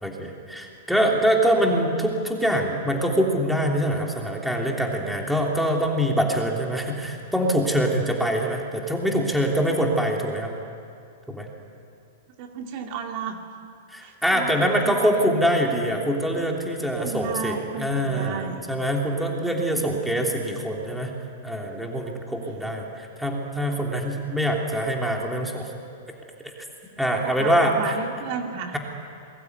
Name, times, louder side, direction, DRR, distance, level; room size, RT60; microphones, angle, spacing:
voice 1, 0.0-10.5 11.3-11.5 13.9-21.1 21.4-25.7 27.0-28.0, equal, ahead, 0 dB, 3.1 m, -24 dB
voice 2, 12.4-13.4 14.0-15.0 16.8-18.6 19.2-19.7 20.1-20.3 27.2-28.8, right 6 dB, 40° right, 3 dB, 2.1 m, -34 dB
28.0 x 22.0 x 9.7 m, 2.5 s
supercardioid pair, 160°, 0 cm